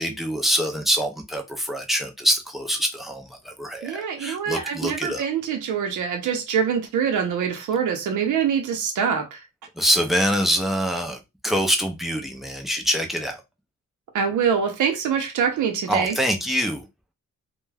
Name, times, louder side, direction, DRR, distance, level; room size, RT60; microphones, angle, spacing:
voice 1, 0.0-5.3 9.8-13.4 15.9-16.8, equal, ahead, 0.3 m, -25 dB
voice 2, 3.8-9.4 14.1-16.1, right 7 dB, 85° right, 0.6 m, -24 dB
2.2 x 2.1 x 3.2 m
wide cardioid pair, 175°, 30 cm